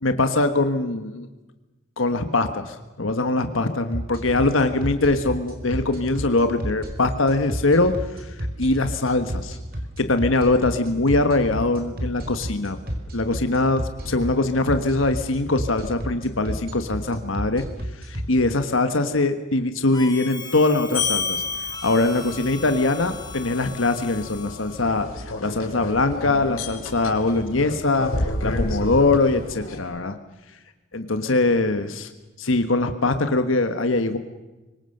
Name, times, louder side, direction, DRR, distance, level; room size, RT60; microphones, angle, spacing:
voice 1, 0.0-1.3 2.0-7.9 8.2-9.6 10.0-12.8 13.1-17.6 18.0-21.4 21.8-25.1 25.4-30.2 30.9-32.1 32.4-34.2, left 2 dB, 65° left, 8 dB, 1.4 m, -22 dB
sound 1, 3.9-18.2, equal, 50° right, 4.5 m, -29 dB
Harmonica, 19.9-25.0, left 6 dB, 20° left, 3.7 m, -39 dB
sound 2, 20.9-29.8, left 2 dB, 90° left, 4.3 m, -30 dB
25.0 x 23.5 x 6.7 m, 1.1 s
head